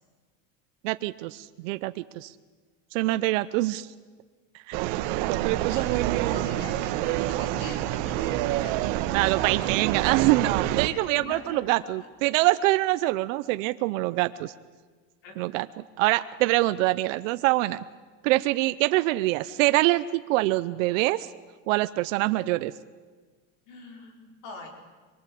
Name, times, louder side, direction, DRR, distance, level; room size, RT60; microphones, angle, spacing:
voice 1, 0.8-2.3 2.9-3.9 4.7-4.8 5.3-6.4 9.1-14.5 15.4-15.7 16.0-17.8 18.2-21.3 21.7-22.7, right 18 dB, 85° right, 11 dB, 0.8 m, -25 dB
sound 1, 4.7-10.9, right 14 dB, 65° right, 1.5 m, -27 dB
voice 2, 5.7-8.9 10.9-12.1 15.2-15.4 23.7-24.7, left 3 dB, 70° left, 3 dB, 4.6 m, -44 dB
24.5 x 23.0 x 8.5 m, 1.4 s
cardioid pair, 155°, 37 cm